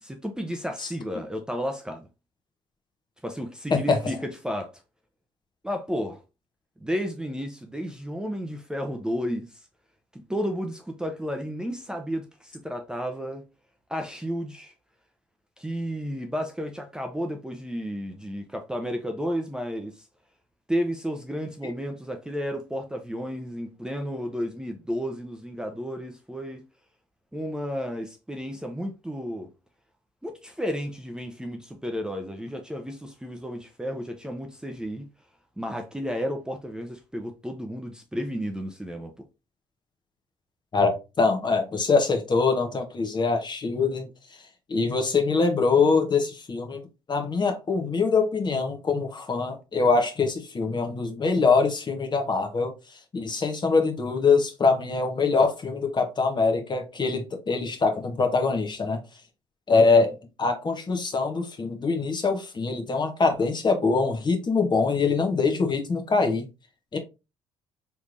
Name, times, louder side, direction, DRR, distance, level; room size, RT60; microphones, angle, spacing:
voice 1, 0.0-2.1 3.2-4.7 5.6-6.2 6.8-9.5 10.1-13.5 13.9-14.7 15.6-20.0 20.7-26.6 27.3-29.5 30.2-35.1 35.6-39.3, equal, 5° right, 0.6 m, -32 dB
voice 2, 40.7-44.1 44.7-46.8 47.1-52.7 53.1-59.0 59.7-66.5 66.9-67.0, left 4 dB, 35° left, 1.0 m, -23 dB
3.4 x 3.1 x 2.5 m
hypercardioid pair, 55°, 13 cm